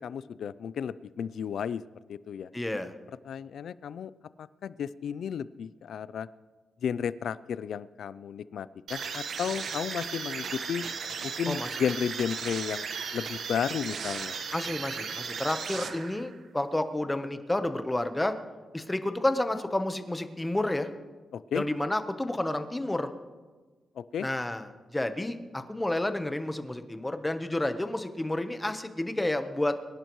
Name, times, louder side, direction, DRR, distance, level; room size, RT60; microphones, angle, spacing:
voice 1, 0.0-1.8 2.1-2.5 3.3-4.1 4.4-6.3 6.8-10.8 11.2-12.8 13.1-14.3 21.3-21.6 24.0-24.3, left 8 dB, 75° left, 17 dB, 0.4 m, -33 dB
voice 2, 2.5-2.9 11.5-11.7 14.5-18.3 18.7-20.9 21.5-23.1 24.2-30.0, left 1 dB, 10° left, 9 dB, 1.0 m, -30 dB
sound 1, 8.9-16.4, right 6 dB, 70° right, 1.2 m, -36 dB
23.5 x 11.0 x 3.1 m, 1.3 s
cardioid pair, 100°, 0 cm